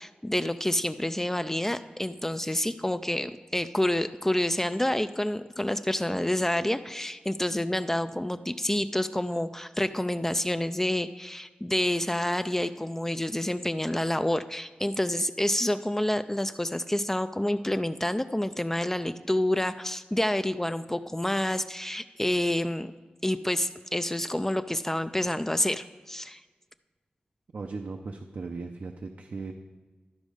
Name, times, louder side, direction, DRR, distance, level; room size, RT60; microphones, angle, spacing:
voice 1, 0.0-22.9 23.2-26.4, left 1 dB, 15° left, 11 dB, 0.4 m, -28 dB
voice 2, 27.5-29.5, right 4 dB, 70° right, 4 dB, 0.6 m, -37 dB
12.5 x 5.2 x 4.9 m, 1.3 s
wide cardioid pair, 70°, 3 cm